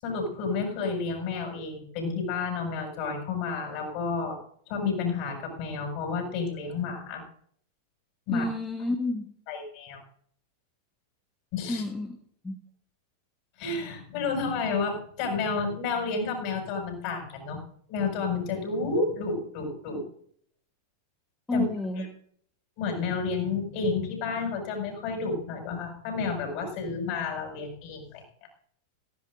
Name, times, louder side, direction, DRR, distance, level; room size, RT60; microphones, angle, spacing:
voice 1, 0.0-4.4 4.7-7.2 8.3-8.5 9.5-10.0 11.5-11.8 13.6-17.6 17.9-20.0 21.5-21.6 22.0-22.1 22.8-28.2, left 4 dB, 45° left, 1 dB, 7.0 m, -30 dB
voice 2, 8.3-9.3 11.7-12.2 12.4-12.6 21.5-22.1, left 1 dB, 10° left, 4 dB, 1.3 m, -29 dB
18.5 x 16.5 x 2.6 m, 0.62 s
figure-of-eight pair, 90°, 0 cm